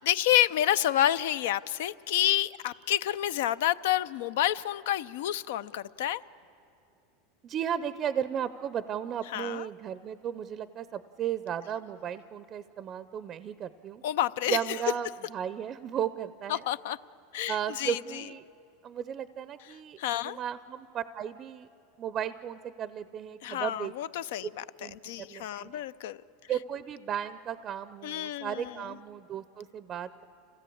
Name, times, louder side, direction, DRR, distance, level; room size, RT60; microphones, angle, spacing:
voice 1, 0.0-6.2 9.3-9.7 14.0-14.6 16.5-17.0 17.3-18.2 20.0-20.4 23.4-26.2 28.0-28.7, left 12 dB, 80° left, 16 dB, 0.5 m, -29 dB
voice 2, 7.4-14.0 14.5-16.6 17.5-18.4 18.8-21.7 22.0-23.9 24.8-25.8 26.5-30.2, right 9 dB, 35° right, 14 dB, 0.5 m, -35 dB
26.0 x 16.5 x 8.6 m, 2.6 s
supercardioid pair, 130°, 0 cm